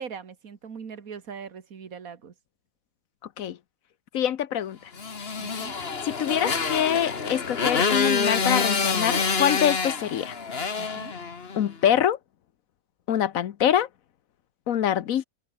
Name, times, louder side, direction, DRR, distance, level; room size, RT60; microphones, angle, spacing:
voice 1, 0.0-2.3 5.4-5.7 10.8-11.1, right 6 dB, 65° right, 2.2 m, -40 dB
voice 2, 4.1-4.9 6.0-10.3 11.5-12.2 13.1-13.9 14.7-15.2, left 10 dB, 65° left, 1.2 m, -25 dB
Motorcycle, 5.0-11.7, left 5 dB, 40° left, 1.8 m, -27 dB
omnidirectional pair, 1.6 m